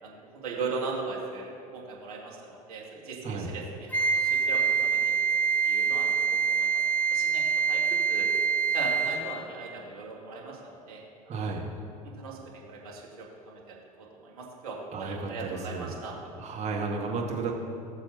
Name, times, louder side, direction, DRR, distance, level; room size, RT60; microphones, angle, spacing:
voice 1, 0.0-5.1 5.6-6.8 7.1-7.8 8.1-8.3 8.7-11.0 11.3-11.5 12.0-16.2, right 4 dB, 70° right, -3 dB, 2.1 m, -39 dB
Wind instrument woodwind instrument, 3.9-9.3, right 6 dB, 10° left, 1.7 m, -25 dB
voice 2, 11.3-11.7 14.9-15.9 16.3-17.5, right 4 dB, 35° right, -1 dB, 1.7 m, -33 dB
18.5 x 7.0 x 2.9 m, 2.5 s
figure-of-eight pair, 70°, 20 cm